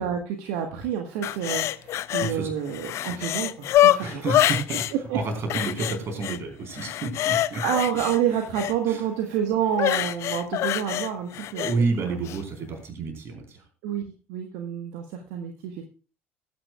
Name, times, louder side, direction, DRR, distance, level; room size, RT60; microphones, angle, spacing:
voice 1, 0.0-4.2 5.1-5.2 7.6-11.7 12.0-12.1 13.8-14.0 14.3-15.8, right 9 dB, 65° right, 4 dB, 1.5 m, -28 dB
sound 1, 1.2-2.3 2.7-4.9 5.5-6.4 6.7-8.7 9.7-11.7 12.2-12.4, left 13 dB, 50° left, 0.5 m, -25 dB
voice 2, 2.2-2.5 3.1-3.3 4.0-4.8 5.1-7.6 8.9-9.0 11.5-13.6, right 3 dB, 45° right, 4 dB, 4.4 m, -30 dB
20.0 x 9.6 x 2.4 m, 0.34 s
figure-of-eight pair, 60°, 6 cm